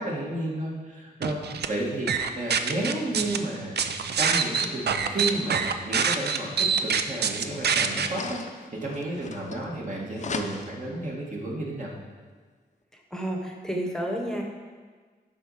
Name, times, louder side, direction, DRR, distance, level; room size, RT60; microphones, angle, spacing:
voice 1, 0.0-1.4 1.7-3.8 4.2-11.9, right 1 dB, 45° right, -3 dB, 1.9 m, -32 dB
sound 1, 1.2-1.7 2.1-3.4 3.8-8.1, right 6 dB, 75° right, 0.5 m, -25 dB
sound 2, 7.3-9.9 10.2-10.9, left 4 dB, 45° left, 0.6 m, -38 dB
voice 2, 13.1-14.4, right 1 dB, 5° left, 1 dB, 1.1 m, -30 dB
11.5 x 4.3 x 5.0 m, 1.5 s
wide cardioid pair, 100°, 17 cm